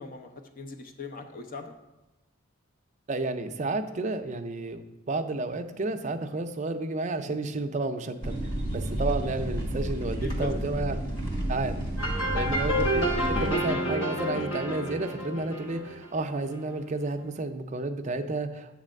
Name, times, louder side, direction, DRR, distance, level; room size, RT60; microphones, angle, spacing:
voice 1, 0.0-1.7 10.2-10.5 12.1-12.4, left 4 dB, 40° left, 5 dB, 0.6 m, -40 dB
voice 2, 3.1-11.0 11.5-11.8 12.3-18.7, right 2 dB, 35° right, 7 dB, 0.4 m, -31 dB
sound 1, 8.2-13.5, right 1 dB, 25° left, 1.3 m, -31 dB
sound 2, 12.0-16.6, equal, 80° left, 1.2 m, -29 dB
8.2 x 3.3 x 6.3 m, 1.0 s
head